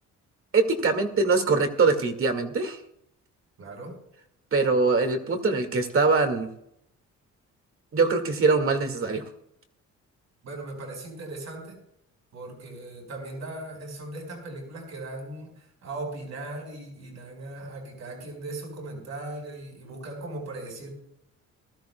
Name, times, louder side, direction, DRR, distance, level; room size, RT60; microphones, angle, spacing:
voice 1, 0.5-2.8 4.5-6.5 7.9-9.2, right 4 dB, 45° right, 6 dB, 2.1 m, -23 dB
voice 2, 3.6-4.0 10.4-11.8 12.3-20.9, right 2 dB, 60° right, 1 dB, 5.1 m, -38 dB
20.0 x 13.5 x 2.3 m, 0.76 s
cardioid pair, 90°, 30 cm